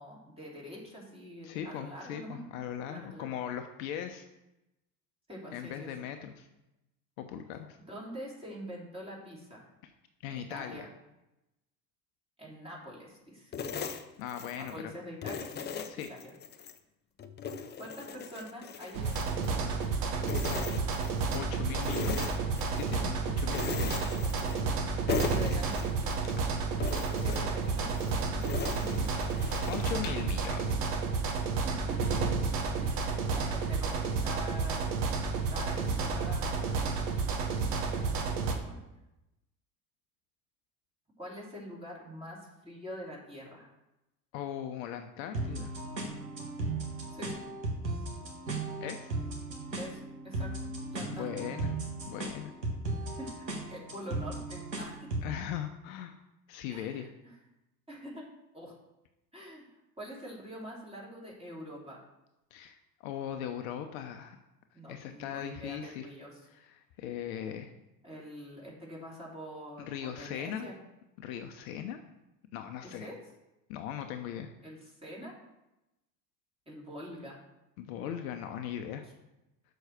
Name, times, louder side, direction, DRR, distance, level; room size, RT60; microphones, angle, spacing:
voice 1, 0.0-2.4 2.9-3.3 5.3-5.9 7.9-9.7 10.3-10.9 12.4-13.5 14.5-15.5 16.1-16.3 17.8-19.7 23.9-25.8 27.1-29.4 31.6-32.0 32.8-34.9 35.5-36.9 37.5-38.8 41.2-42.4 42.6-43.7 47.1-47.4 49.8-51.5 53.2-55.1 56.7-57.3 57.9-58.2 58.5-58.7 59.3-59.7 60.0-62.0 64.7-66.4 68.0-70.7 72.8-73.2 74.6-75.3 76.7-77.4, equal, 10° right, -4 dB, 3.1 m, -45 dB
voice 2, 1.4-4.2 5.5-6.5 7.2-7.8 9.8-9.9 10.2-10.9 14.2-14.9 15.9-16.1 20.7-20.8 21.3-22.3 22.7-24.0 29.7-30.8 44.3-45.7 48.8-49.1 51.1-51.7 52.1-52.5 55.2-56.1 56.5-57.1 62.5-64.4 64.9-66.1 66.5-67.7 69.8-70.7 71.2-72.0 72.5-73.1 73.7-74.5 77.8-79.0, left 9 dB, 55° left, 6 dB, 0.7 m, -39 dB
sound 1, 13.5-14.8 15.2-16.8 17.2-19.9 20.2-21.5 21.8-23.0 23.5-24.8 25.1-26.4 26.8-30.3, left 6 dB, 20° left, 0.6 m, -39 dB
sound 2, 18.9-38.5, right 4 dB, 70° right, 1.2 m, -31 dB
sound 3, 45.3-55.3, right 2 dB, 85° right, 1.4 m, -36 dB
6.3 x 4.6 x 6.5 m, 0.94 s
figure-of-eight pair, 70°, 49 cm